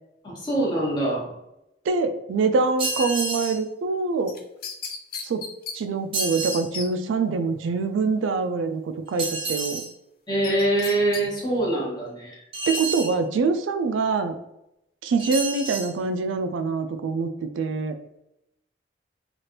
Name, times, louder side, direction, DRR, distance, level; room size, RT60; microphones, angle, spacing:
voice 1, 0.2-1.3 10.3-12.4, right 1 dB, 25° left, -4 dB, 0.9 m, -24 dB
voice 2, 1.9-4.3 5.2-5.4 5.7-9.8 12.7-14.3 15.0-18.0, right 4 dB, 85° right, 7 dB, 0.3 m, -25 dB
sound 1, 2.8-3.6 6.1-6.7 9.2-9.9 12.5-13.2 15.2-15.9, right 3 dB, 30° right, 0.7 m, -29 dB
sound 2, 4.3-5.8 6.2-6.3 6.5-6.9 10.4-11.2 11.6-11.7, left 5 dB, 50° left, 0.4 m, -34 dB
3.2 x 2.4 x 2.9 m, 0.84 s
head